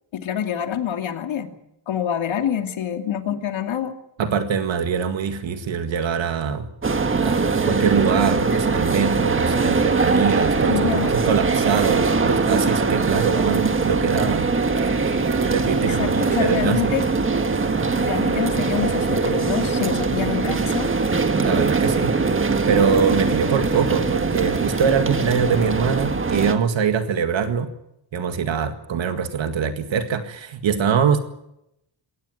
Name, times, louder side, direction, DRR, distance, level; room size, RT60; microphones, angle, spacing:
voice 1, 0.1-1.6 1.9-4.0 10.7-11.1 15.8-17.0 18.0-20.9, left 9 dB, 85° left, 6 dB, 2.6 m, -26 dB
voice 2, 4.2-6.7 7.2-14.5 15.0-16.9 21.4-22.2 22.7-27.7 28.1-31.2, right 6 dB, 75° right, 8 dB, 2.1 m, -23 dB
sound 1, 6.8-26.5, right 4 dB, 25° right, 1.6 m, -21 dB
22.5 x 18.0 x 9.3 m, 0.81 s
wide cardioid pair, 155°, 46 cm